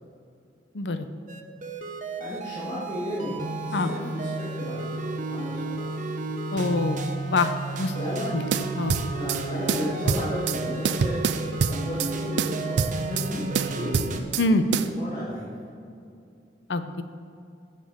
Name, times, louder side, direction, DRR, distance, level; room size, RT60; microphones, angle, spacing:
voice 1, 0.7-1.1 3.7-3.9 6.5-7.0 7.3-7.5 7.8-7.9 8.8-9.0 14.4-14.6 16.7-17.0, left 2 dB, 80° left, 10 dB, 0.7 m, -24 dB
sound 1, 1.3-14.2, right 3 dB, 45° right, 0.8 m, -32 dB
voice 2, 2.2-5.9 7.9-8.3 9.0-14.3 14.7-15.5, equal, 45° left, -11 dB, 2.7 m, -34 dB
sound 2, 8.5-9.4 9.7-10.6 10.8-12.1 12.4-13.3 13.5-14.5 14.7-14.9, right 6 dB, 75° right, 0.4 m, -26 dB
15.5 x 6.6 x 3.7 m, 2.6 s
head